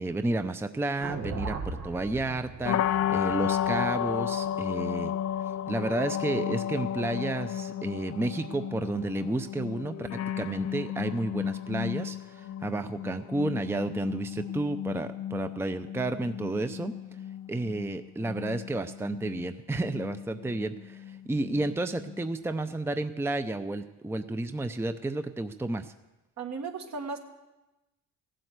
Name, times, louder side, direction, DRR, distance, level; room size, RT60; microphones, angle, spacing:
voice 1, 0.0-2.8 3.1-5.1 5.7-10.1 10.4-16.9 17.5-25.9, right 2 dB, 10° right, 9 dB, 0.6 m, -31 dB
sound 1, 1.0-5.3, right 3 dB, 80° right, 1.7 m, -39 dB
sound 2, 2.6-22.5, left 10 dB, 60° left, 0.6 m, -34 dB
voice 2, 26.4-27.2, right 4 dB, 65° right, 3 dB, 1.8 m, -35 dB
16.0 x 7.7 x 8.1 m, 1.1 s
cardioid pair, 90°, 30 cm